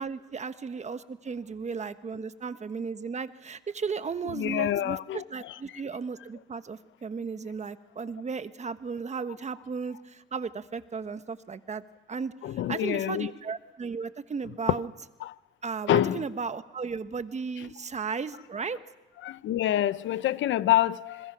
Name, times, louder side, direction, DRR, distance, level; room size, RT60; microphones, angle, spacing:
voice 1, 0.0-11.8 12.1-14.9 15.6-18.8, right 5 dB, 35° right, 1.3 m, -35 dB
voice 2, 4.3-5.2 12.4-13.3 15.2-15.3 15.9-16.2 19.2-21.3, left 12 dB, 75° left, 0.7 m, -26 dB
26.5 x 21.5 x 6.0 m
cardioid pair, 90°, 20 cm